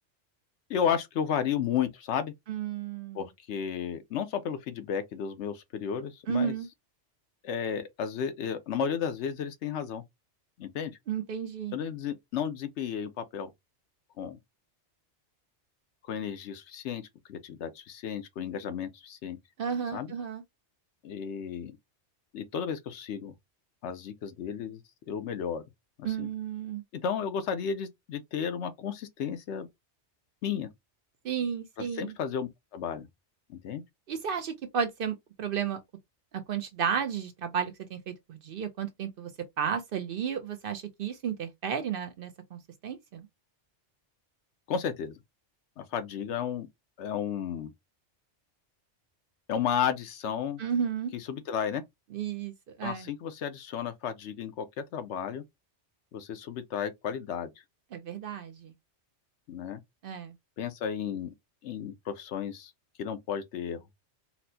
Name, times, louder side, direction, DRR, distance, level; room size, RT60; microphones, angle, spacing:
voice 1, 0.7-2.3 3.1-6.5 7.4-10.0 10.6-10.9 11.7-13.5 14.2-14.4 16.1-17.0 17.3-19.4 19.9-20.1 21.0-21.8 22.3-23.3 23.8-24.8 25.1-25.6 26.0-26.3 26.9-29.7 30.4-30.7 31.9-33.1 33.5-33.8 44.7-45.1 45.8-46.7 47.0-47.7 49.5-50.6 51.1-51.8 52.8-55.4 56.1-57.5 59.5-59.8 60.6-61.3 61.6-62.7 63.0-63.8, left 8 dB, 75° left, 0.9 m, -33 dB
voice 2, 2.5-3.2 6.3-6.7 11.1-11.7 19.6-20.4 26.0-26.8 31.2-32.1 34.1-35.8 36.3-39.3 39.6-43.3 50.6-51.1 52.1-52.5 52.8-53.1 57.9-58.7 60.0-60.3, right 7 dB, 60° right, 0.6 m, -33 dB
4.2 x 2.0 x 2.6 m
omnidirectional pair, 1.2 m